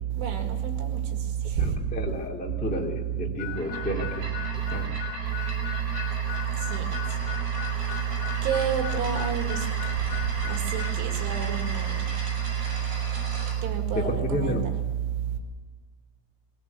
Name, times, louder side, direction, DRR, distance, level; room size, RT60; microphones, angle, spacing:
voice 1, 0.0-1.9 4.5-4.9 5.3-14.7 15.1-15.4, right 9 dB, 75° right, 4 dB, 4.3 m, -28 dB
voice 2, 1.6-4.3 4.7-4.9 13.9-14.7, left 1 dB, 5° left, 0 dB, 0.7 m, -31 dB
Harmonica, 3.4-11.0, left 17 dB, 90° left, 3.5 m, -39 dB
sound 1, 3.4-13.6, right 1 dB, 60° right, 8.0 m, -37 dB
21.0 x 18.5 x 8.1 m, 1.5 s
omnidirectional pair, 5.6 m